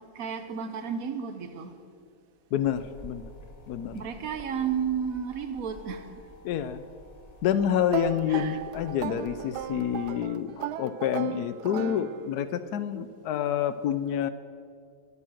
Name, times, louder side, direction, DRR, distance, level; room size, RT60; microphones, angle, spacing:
voice 1, 0.0-1.7 3.9-6.1 8.3-8.6, right 7 dB, 50° right, 1.2 m, -32 dB
voice 2, 2.5-3.2 3.7-4.0 6.4-6.8 7.4-14.3, left 9 dB, 85° left, 0.8 m, -28 dB
sound 1, 2.6-10.2, equal, 25° left, 0.9 m, -50 dB
sound 2, 7.9-12.5, right 11 dB, 90° right, 0.8 m, -37 dB
22.0 x 8.7 x 6.5 m
omnidirectional pair, 2.4 m